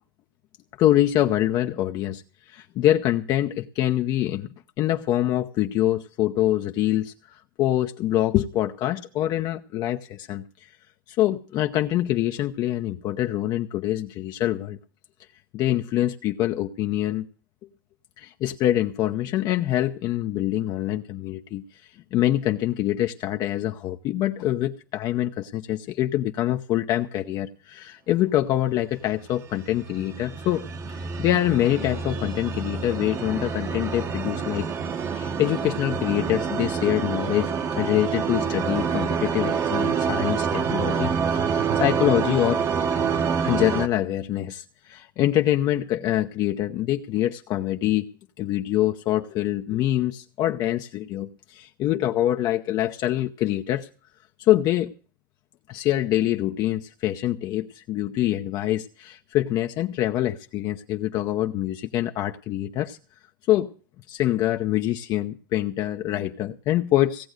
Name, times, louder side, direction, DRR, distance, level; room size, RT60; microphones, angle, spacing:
voice 1, 0.8-2.2 2.5-4.5 4.8-10.7 11.1-14.8 15.5-17.3 18.2-34.7 35.0-42.6 43.4-48.1 48.4-53.9 54.4-54.9 55.7-63.0 63.5-63.7 64.1-67.3, left 13 dB, 40° left, 0.7 m, -25 dB
sound 1, 29.5-43.9, right 6 dB, 25° right, 1.0 m, -27 dB
17.0 x 7.9 x 6.4 m
supercardioid pair, 125°, 11 cm